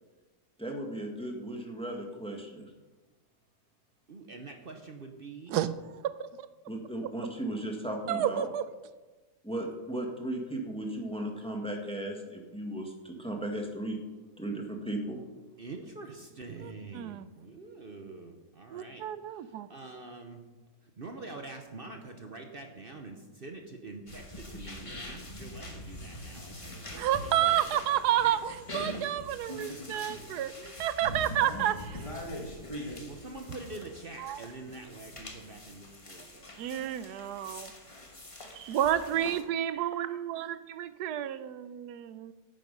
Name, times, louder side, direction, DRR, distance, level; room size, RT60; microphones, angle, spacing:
voice 1, 0.6-2.7 6.7-8.4 9.4-14.0 14.4-15.2, right 1 dB, 5° left, 2 dB, 1.5 m, -36 dB
voice 2, 4.1-5.6 15.6-19.1 19.3-20.4 20.8-27.6 33.1-36.5, right 3 dB, 40° right, 4 dB, 1.0 m, -45 dB
voice 3, 8.1-8.6 16.6-17.3 18.7-19.7 27.0-32.0 34.2-34.4 36.6-37.7 38.5-42.3, right 11 dB, 90° right, 14 dB, 1.2 m, -30 dB
sound 1, 24.1-39.4, left 1 dB, 20° left, 1.2 m, -43 dB
10.5 x 9.1 x 5.4 m, 1.2 s
omnidirectional pair, 1.7 m